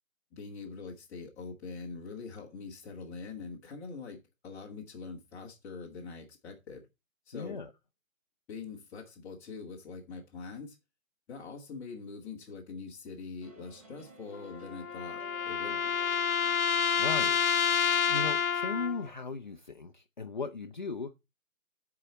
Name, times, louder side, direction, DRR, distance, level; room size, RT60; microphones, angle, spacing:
voice 1, 0.3-6.8 7.3-7.6 8.5-10.7 11.3-15.9, left 4 dB, 5° left, 1.1 m, -44 dB
voice 2, 7.3-7.7 17.0-17.5 18.1-21.3, left 4 dB, 35° left, 0.6 m, -37 dB
sound 1, 13.4-19.6, right 3 dB, 25° right, 1.4 m, -56 dB
sound 2, 14.3-19.1, left 7 dB, 85° left, 0.6 m, -29 dB
12.5 x 4.9 x 4.1 m
figure-of-eight pair, 145°, 41 cm